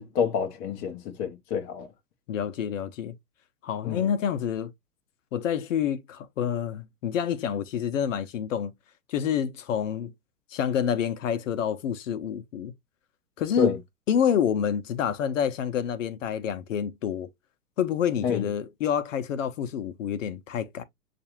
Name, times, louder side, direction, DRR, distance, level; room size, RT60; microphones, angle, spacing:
voice 1, 0.0-1.9 3.8-4.0 13.6-13.8 18.2-18.5, left 7 dB, 20° left, 0.5 m, -28 dB
voice 2, 2.3-3.1 3.6-4.7 5.3-8.7 9.1-10.1 10.5-12.7 13.4-13.7 14.1-17.3 17.8-20.8, left 8 dB, 55° left, 0.7 m, -28 dB
6.7 x 2.5 x 2.8 m
figure-of-eight pair, 110°, 47 cm